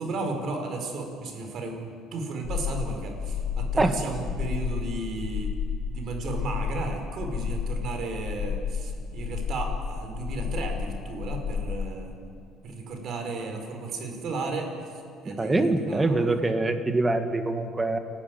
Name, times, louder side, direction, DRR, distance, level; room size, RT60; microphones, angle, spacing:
voice 1, 0.0-5.5 5.9-12.1 12.6-14.7 15.2-16.3, right 3 dB, 50° right, 4 dB, 4.5 m, -34 dB
sound 1, 2.4-11.9, left 6 dB, 50° left, 1.0 m, -31 dB
voice 2, 15.3-18.0, right 2 dB, 15° right, 7 dB, 1.7 m, -24 dB
28.5 x 12.0 x 9.3 m, 2.2 s
cardioid pair, 120°, 0 cm